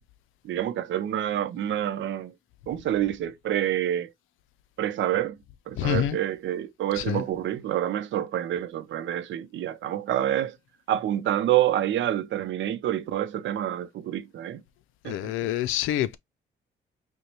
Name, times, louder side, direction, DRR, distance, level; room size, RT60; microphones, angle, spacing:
voice 1, 0.4-2.3 2.7-4.1 4.8-5.4 5.7-10.6 10.9-14.6 15.0-15.2, right 12 dB, 70° right, 0.7 m, -27 dB
voice 2, 5.8-6.2 6.9-7.2 15.0-16.2, left 12 dB, 90° left, 0.5 m, -27 dB
5.2 x 2.3 x 3.0 m
cardioid pair, 90°, 20 cm